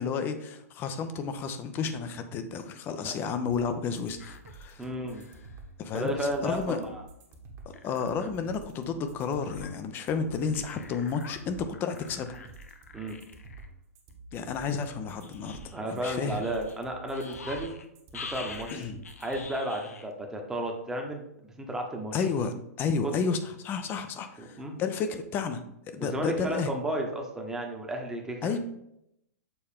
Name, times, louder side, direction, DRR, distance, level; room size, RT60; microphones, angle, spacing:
voice 1, 0.0-4.9 5.8-6.1 6.4-6.8 7.7-12.4 14.3-15.6 15.9-16.4 18.7-19.0 22.1-25.6 25.9-26.7 28.4-28.6, left 5 dB, 25° left, 9 dB, 0.6 m, -31 dB
sound 1, 3.5-19.5, right 3 dB, 35° right, 1.3 m, -49 dB
sound 2, 4.2-4.5 5.0-5.6 6.4-6.5 6.8-6.9 7.3-7.4 7.7-8.3 9.0-9.7 10.5-11.4 11.7-13.7 14.1-14.2 15.2-17.9 18.1-20.1 20.5-20.6, left 5 dB, 70° left, 0.7 m, -46 dB
voice 2, 4.8-5.2 5.9-7.0 12.9-13.2 15.7-17.7 18.1-18.9 19.2-22.2 23.0-23.1 24.4-24.8 26.0-28.6, right 1 dB, 5° right, 1 dB, 1.0 m, -33 dB
6.8 x 4.2 x 3.6 m, 0.80 s
figure-of-eight pair, 110°, 8 cm